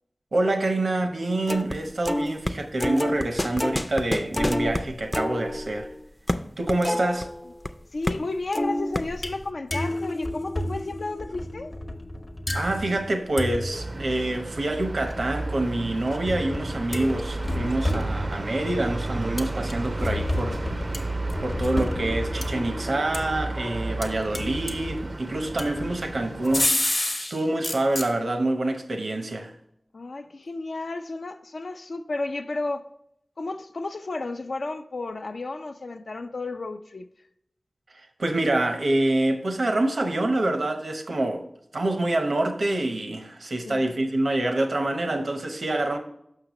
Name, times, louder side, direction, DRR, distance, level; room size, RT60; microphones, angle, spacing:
voice 1, 0.3-5.9 6.6-7.3 12.5-20.6 21.4-26.7 27.3-29.5 38.0-41.4 41.7-46.0, right 2 dB, 85° right, 0.8 m, -26 dB
sound 1, 1.5-1.8 2.1-7.7 8.0-8.3 8.5-9.4, left 1 dB, 25° left, 0.4 m, -28 dB
voice 2, 7.9-11.7 29.9-32.9 33.4-37.1 43.6-43.9, left 2 dB, 85° left, 0.5 m, -33 dB
sound 2, 9.0-9.5 9.7-14.0 15.0-18.8 19.4-23.7 24.0-25.1 25.6-27.4 27.6-28.1, left 1 dB, 40° left, 0.7 m, -31 dB
sound 3, 13.7-26.7, right 2 dB, 50° right, 0.4 m, -33 dB
6.6 x 5.9 x 3.0 m
wide cardioid pair, 60°, 0 cm